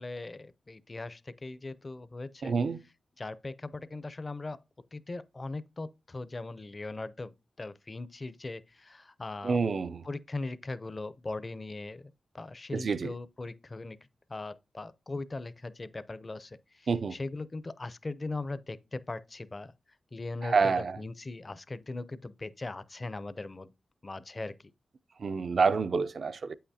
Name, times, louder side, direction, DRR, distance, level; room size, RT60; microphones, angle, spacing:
voice 1, 0.0-2.5 3.2-4.6 4.9-7.3 7.6-9.6 10.0-14.0 14.3-19.7 20.1-23.7 24.0-24.6, left 2 dB, 35° left, 0.5 m, -39 dB
voice 2, 2.4-2.8 9.4-10.0 12.7-13.1 16.9-17.1 20.4-21.0 25.2-26.5, right 4 dB, 65° right, 0.4 m, -27 dB
8.1 x 5.7 x 2.7 m
cardioid pair, 65°, 0 cm